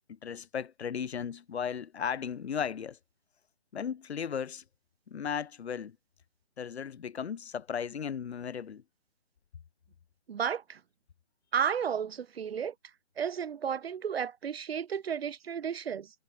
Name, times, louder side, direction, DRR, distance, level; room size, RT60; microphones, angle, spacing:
voice 1, 0.1-3.0 3.7-4.6 5.1-6.0 6.6-8.8, left 7 dB, 75° left, 0.8 m, -36 dB
voice 2, 10.3-10.8 11.5-12.7 13.2-16.1, right 7 dB, 65° right, 0.8 m, -32 dB
hypercardioid pair, 160°, 33 cm